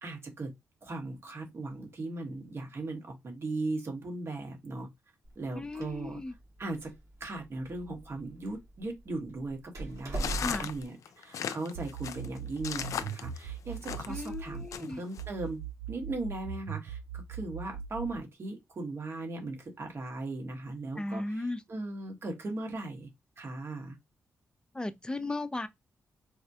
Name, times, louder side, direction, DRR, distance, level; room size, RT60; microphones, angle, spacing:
voice 1, 0.0-0.5 0.8-4.9 5.3-6.2 6.6-6.9 7.2-15.6 15.9-23.1 23.4-24.0, right 2 dB, 50° right, 1.3 m, -38 dB
Door, 5.2-10.8, right 2 dB, 65° right, 1.9 m, -42 dB
voice 2, 5.5-6.3 10.4-10.7 14.1-15.0 21.0-21.6 24.7-25.7, left 2 dB, 15° left, 0.5 m, -36 dB
sound 1, 10.1-14.3 14.7-15.2, left 8 dB, 75° left, 0.4 m, -37 dB
sound 2, 11.7-14.8 15.2-18.2, right 7 dB, 90° right, 0.4 m, -40 dB
4.1 x 2.1 x 2.8 m
cardioid pair, 80°, 6 cm